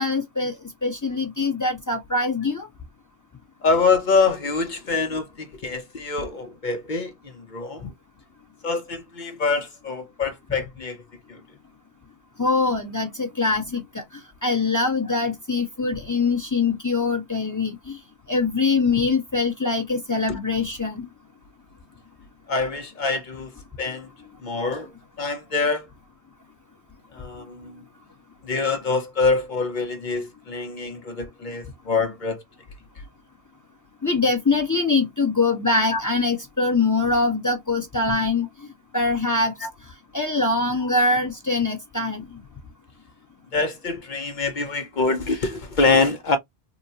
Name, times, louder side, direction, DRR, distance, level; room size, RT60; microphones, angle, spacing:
voice 1, 0.0-2.7 12.4-18.0 18.3-21.1 34.0-38.5 38.9-39.6 40.1-42.3, left 3 dB, 20° left, 0.8 m, -23 dB
voice 2, 3.6-7.9 8.6-11.0 11.3-11.4 20.3-20.4 22.5-23.5 23.8-24.1 24.4-24.9 25.2-25.9 27.1-27.8 28.4-32.4 35.9-36.0 39.6-39.7 43.5-46.4, left 4 dB, 55° left, 0.8 m, -25 dB
3.9 x 2.1 x 2.6 m
omnidirectional pair, 1.0 m